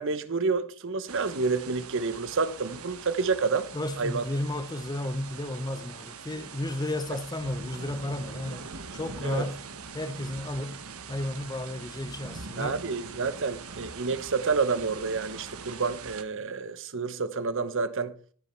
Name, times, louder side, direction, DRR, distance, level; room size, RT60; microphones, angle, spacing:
voice 1, 0.0-3.7 4.0-4.2 9.2-9.5 12.6-18.1, right 4 dB, 60° right, 0.9 m, -29 dB
sound 1, 1.1-16.2, right 5 dB, 75° right, 1.3 m, -43 dB
voice 2, 3.7-9.6 9.9-12.8, left 1 dB, 20° left, 0.6 m, -33 dB
15.5 x 7.0 x 4.5 m
head